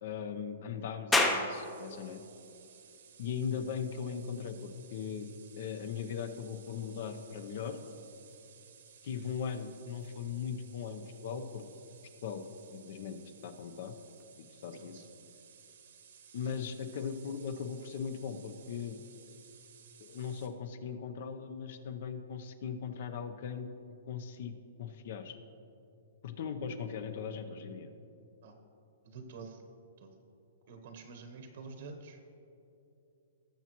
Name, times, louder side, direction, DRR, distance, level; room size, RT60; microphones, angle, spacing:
voice 1, 0.0-2.2 3.2-5.3 5.6-7.8 9.0-11.6 12.2-12.4 12.7-14.0 14.5-15.0 16.3-19.0 20.0-23.7 24.1-25.4 26.2-27.9, left 7 dB, 50° left, 9 dB, 0.8 m, -39 dB
sound 1, 1.1-14.2, left 2 dB, 5° left, 0.6 m, -40 dB
sound 2, 1.5-20.5, right 7 dB, 70° right, 1.2 m, -58 dB
voice 2, 14.7-15.1 16.4-16.5 28.4-28.5 29.0-29.6 30.0-30.1 30.7-32.2, right 4 dB, 50° right, 6 dB, 1.0 m, -48 dB
18.5 x 7.1 x 3.1 m, 2.8 s
hypercardioid pair, 165°, 0 cm